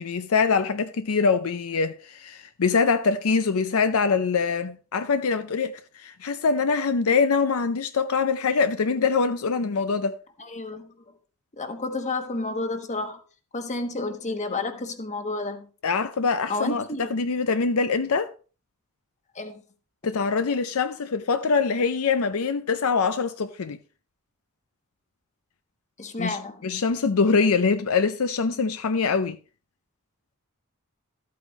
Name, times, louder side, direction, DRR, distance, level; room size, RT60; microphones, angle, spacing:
voice 1, 0.0-10.2 15.8-18.3 20.0-23.8 26.2-26.4 26.6-29.4, left 5 dB, 70° left, 0.6 m, -24 dB
voice 2, 10.4-10.9 11.6-13.2 13.5-15.7 16.5-17.1 19.3-19.6 26.0-26.6, left 2 dB, 35° left, 1.3 m, -31 dB
13.0 x 8.5 x 3.1 m
head